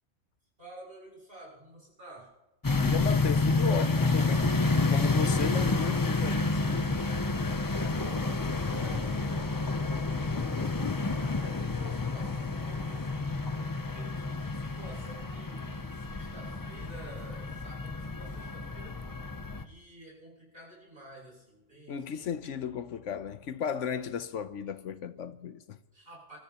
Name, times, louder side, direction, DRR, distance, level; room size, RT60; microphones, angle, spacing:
voice 1, 0.6-2.3 7.2-19.0 19.6-22.3 25.9-26.4, right 1 dB, 45° right, 7.0 m, -51 dB
sound 1, 2.6-19.6, left 3 dB, 20° left, 0.6 m, -29 dB
voice 2, 2.8-7.1 21.9-25.8, left 7 dB, 70° left, 1.1 m, -35 dB
28.0 x 13.5 x 3.0 m
omnidirectional pair, 1.3 m